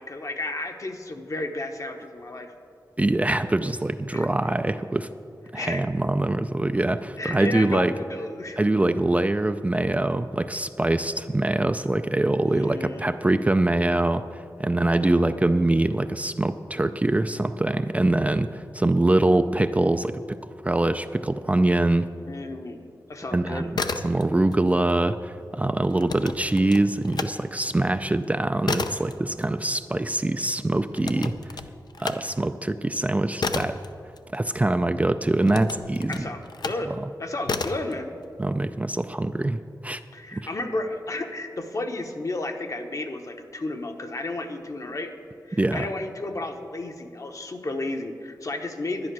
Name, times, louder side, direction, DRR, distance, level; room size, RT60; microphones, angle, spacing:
voice 1, 0.0-2.5 4.1-4.3 5.5-5.8 7.1-8.6 12.4-13.2 15.0-15.5 22.2-22.8 23.1-23.7 36.1-36.9 37.2-38.1 40.1-45.1 45.5-49.1, left 2 dB, 45° left, 5 dB, 1.0 m, -33 dB
voice 2, 3.0-5.1 5.5-7.9 8.6-22.1 23.3-23.7 24.0-31.5 32.0-33.8 34.3-36.3 36.9-37.0 38.4-40.0 40.3-40.5 45.6-45.9, right 2 dB, 20° right, 9 dB, 0.4 m, -24 dB
sound 1, 23.7-24.6 24.9-27.3 27.7-34.8 35.4-36.9 37.4-37.9, left 4 dB, 70° left, 0.6 m, -32 dB
11.0 x 10.0 x 6.1 m, 2.5 s
wide cardioid pair, 105°, 7 cm